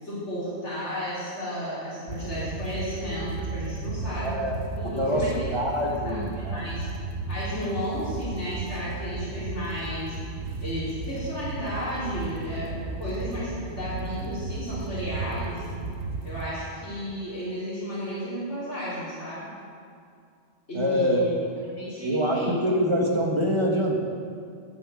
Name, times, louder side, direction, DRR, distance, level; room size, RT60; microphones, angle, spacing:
voice 1, 0.0-4.4 4.8-5.6 5.8-6.9 7.3-10.2 10.6-15.7 16.2-19.5 20.7-21.3 21.6-22.6, equal, 80° left, -11 dB, 4.1 m, -33 dB
sound 1, 2.1-16.5, right 3 dB, 65° right, 1.3 m, -34 dB
voice 2, 4.2-4.6 4.8-6.6 20.7-21.3 22.0-24.0, equal, 25° right, 0 dB, 1.6 m, -25 dB
10.0 x 8.2 x 8.4 m, 2.3 s
omnidirectional pair, 1.2 m